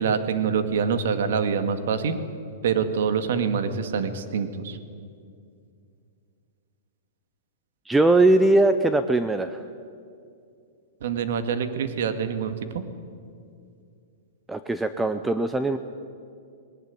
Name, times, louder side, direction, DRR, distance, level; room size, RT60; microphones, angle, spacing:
voice 1, 0.0-2.2 2.6-4.8 11.0-12.8, right 6 dB, 65° right, 9 dB, 2.0 m, -25 dB
voice 2, 7.9-9.6 14.5-15.8, right 2 dB, 5° right, 10 dB, 0.5 m, -20 dB
19.5 x 19.0 x 9.9 m, 2.4 s
supercardioid pair, 165°, 0 cm